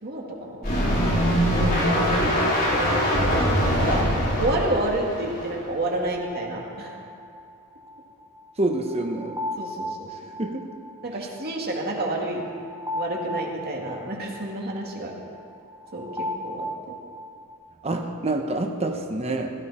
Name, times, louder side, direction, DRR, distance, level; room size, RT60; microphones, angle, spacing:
voice 1, 0.0-0.7 1.8-2.8 3.2-3.4 3.8-4.0 4.4-6.9 9.6-10.1 11.0-12.5 12.9-15.1 15.9-16.1 16.4-16.9, right 1 dB, 45° right, -1 dB, 2.5 m, -29 dB
sound 1, 0.6-5.5 6.0-6.1, equal, 45° left, 4.8 m, -22 dB
sound 2, 6.2-17.5, left 1 dB, 10° right, 1.6 m, -37 dB
voice 2, 8.6-9.4 10.4-10.7 17.8-19.5, right 2 dB, 30° right, 3 dB, 1.0 m, -27 dB
17.0 x 15.0 x 4.3 m, 2.4 s
head